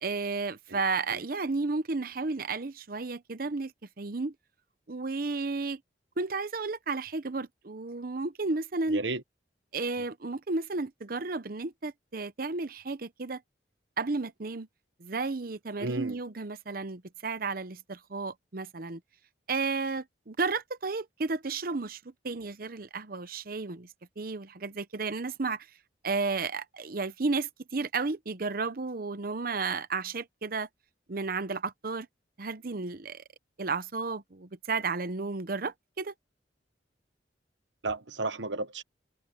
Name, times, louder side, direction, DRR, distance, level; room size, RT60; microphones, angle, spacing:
voice 1, 0.0-3.7 4.0-4.3 4.9-5.8 6.2-9.0 9.7-13.4 14.0-14.7 15.0-19.0 19.5-23.9 24.2-25.7 26.0-30.7 31.1-32.1 32.4-33.2 33.6-36.1, right 3 dB, 55° right, 0.8 m, -33 dB
voice 2, 8.9-9.2 15.8-16.2 37.8-38.8, right 3 dB, 90° right, 1.2 m, -33 dB
head